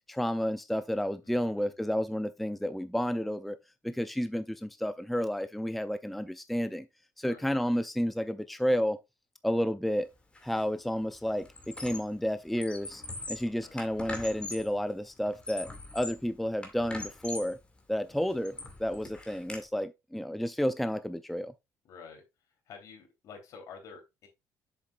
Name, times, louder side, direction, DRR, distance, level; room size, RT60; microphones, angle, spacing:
voice 1, 0.1-3.6 3.8-6.9 7.2-9.0 9.4-10.1 10.4-13.0 13.3-17.6 17.9-21.5, equal, ahead, 0.4 m, -31 dB
voice 2, 1.2-1.7 7.2-7.5 13.6-13.8 21.8-22.2 22.6-24.3, left 5 dB, 65° left, 3.4 m, -49 dB
Squeak, 10.3-10.6 11.0-12.2 12.5-14.7 15.2-16.3 16.6-17.6 18.1-19.6, left 2 dB, 15° left, 2.2 m, -42 dB
7.4 x 7.2 x 2.4 m
cardioid pair, 115°, 6 cm